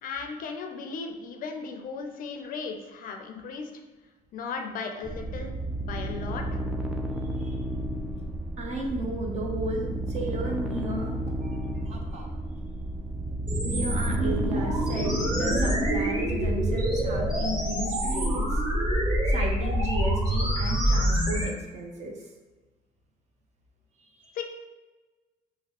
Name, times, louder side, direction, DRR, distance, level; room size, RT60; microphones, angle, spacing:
voice 1, 0.0-3.7 4.3-5.5 5.8-6.6 24.3-24.4, left 5 dB, 55° left, 4 dB, 0.5 m, -36 dB
sound 1, 5.0-19.3, right 1 dB, 5° right, 0.3 m, -33 dB
voice 2, 8.6-12.3 13.6-18.6 19.3-22.3 24.0-24.4, right 1 dB, 40° right, 0 dB, 0.7 m, -34 dB
sound 2, 13.5-21.5, right 1 dB, 25° right, 1.2 m, -26 dB
2.9 x 2.7 x 2.9 m, 1.2 s
cardioid pair, 110°, 17 cm